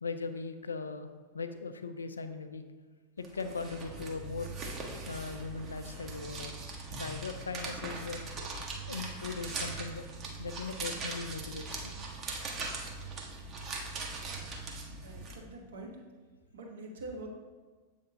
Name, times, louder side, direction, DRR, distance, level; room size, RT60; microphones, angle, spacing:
voice 1, 0.0-2.6 3.2-4.6 5.1-6.6 7.0-8.2 8.9-10.0 10.4-11.9, left 4 dB, 75° left, 9 dB, 0.4 m, -39 dB
sound 1, 3.2-15.4, right 3 dB, 30° right, 0.9 m, -40 dB
voice 2, 15.0-15.9 16.5-17.3, right 2 dB, 65° right, 0 dB, 1.0 m, -44 dB
7.5 x 3.5 x 3.7 m, 1.4 s
figure-of-eight pair, 90°, 0 cm